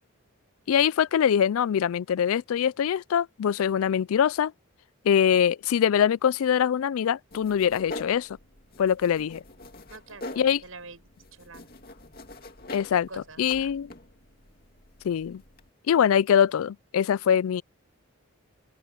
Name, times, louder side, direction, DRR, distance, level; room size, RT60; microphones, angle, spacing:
voice 1, 0.7-4.5 5.0-8.3 8.8-9.4 10.4-10.6 12.7-13.1 13.4-13.9 15.0-15.4 15.9-17.6, left 8 dB, 75° left, 0.3 m, -23 dB
sound 1, 7.3-15.7, left 2 dB, 45° left, 2.3 m, -44 dB
voice 2, 9.9-11.0 11.3-11.7 13.1-13.7, right 3 dB, 70° right, 7.8 m, -46 dB
open air
head